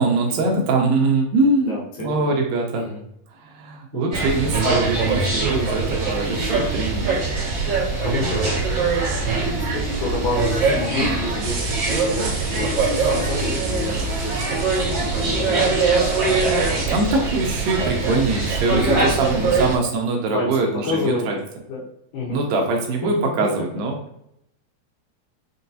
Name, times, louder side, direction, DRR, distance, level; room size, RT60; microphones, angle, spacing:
voice 1, 0.0-2.9 3.3-7.2 16.9-21.4 22.3-24.0, right 3 dB, 85° right, 1 dB, 2.1 m, -23 dB
voice 2, 1.6-2.4 2.7-3.0 3.9-4.1 8.0-8.9 9.4-16.0 17.6-18.3 18.6-19.1 19.4-19.7 20.3-21.2 21.7-21.9 22.1-22.4 23.4-23.5, left 3 dB, 80° left, -3 dB, 2.1 m, -29 dB
sound 1, 4.1-19.8, right 3 dB, 50° right, 1.9 m, -22 dB
sound 2, 6.1-7.8 9.4-11.5 12.5-14.6, right 1 dB, 55° left, 1.2 m, -37 dB
sound 3, 11.4-16.9, right 4 dB, 70° right, 2.3 m, -35 dB
6.4 x 2.3 x 2.6 m, 0.77 s
omnidirectional pair, 4.6 m